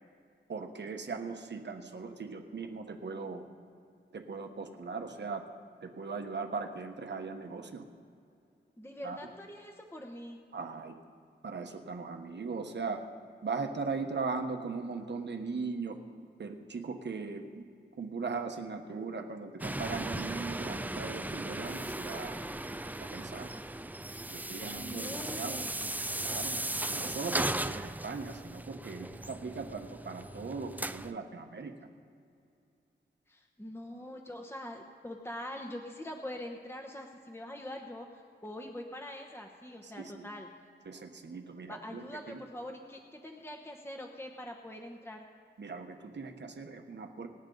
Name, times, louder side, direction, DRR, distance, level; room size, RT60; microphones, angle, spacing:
voice 1, 0.5-3.5 4.1-5.5 5.8-7.8 9.0-9.3 10.5-10.9 11.4-13.0 13.4-16.0 16.4-17.6 18.0-22.4 22.8-23.5 24.3-25.7 26.2-31.7 39.8-40.3 40.8-42.4 45.6-47.3, right 4 dB, 65° right, 5 dB, 1.2 m, -39 dB
voice 2, 8.8-10.4 24.4-25.9 33.3-40.5 41.7-45.2, left 1 dB, 10° left, 2 dB, 0.9 m, -44 dB
sound 1, 19.6-31.1, right 1 dB, 10° right, 0.4 m, -37 dB
25.5 x 8.7 x 4.0 m, 2.5 s
wide cardioid pair, 95°, 19 cm